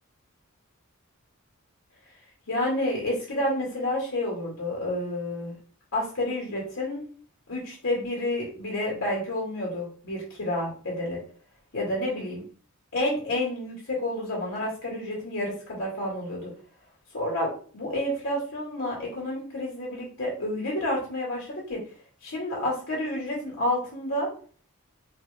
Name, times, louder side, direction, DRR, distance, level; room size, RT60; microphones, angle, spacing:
voice 1, 2.5-5.5 5.9-7.0 7.5-11.2 11.7-12.4 12.9-16.5 17.1-21.8 22.2-24.3, left 1 dB, 80° left, -4 dB, 2.0 m, -29 dB
5.0 x 3.4 x 2.3 m, 0.43 s
head